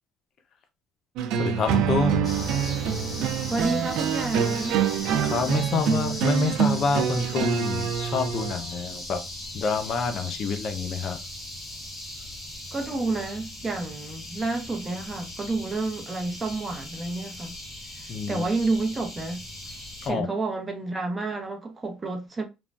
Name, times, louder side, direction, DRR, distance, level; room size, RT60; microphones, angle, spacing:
sound 1, 1.2-8.6, right 8 dB, 75° right, 0.4 m, -26 dB
voice 1, 1.4-2.3 5.2-9.2 9.5-11.2 18.1-18.4 20.0-20.3, left 4 dB, 50° left, 0.5 m, -27 dB
sound 2, 2.2-20.1, left 1 dB, 20° left, 1.5 m, -39 dB
voice 2, 3.5-4.8 12.7-17.5 18.0-19.4 20.1-22.4, right 3 dB, 20° right, 0.7 m, -30 dB
3.2 x 2.2 x 2.5 m
cardioid pair, 110°, 0 cm